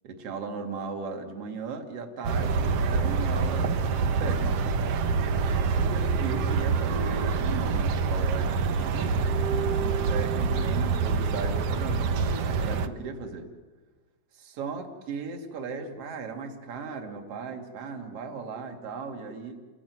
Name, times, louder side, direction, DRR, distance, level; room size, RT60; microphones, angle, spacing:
voice 1, 0.0-4.7 5.4-12.2 12.6-13.6 14.3-19.7, right 5 dB, 50° right, 3 dB, 3.3 m, -37 dB
sound 1, 2.2-12.9, right 5 dB, 65° right, 1.7 m, -26 dB
30.0 x 19.0 x 9.6 m, 1.4 s
omnidirectional pair, 3.8 m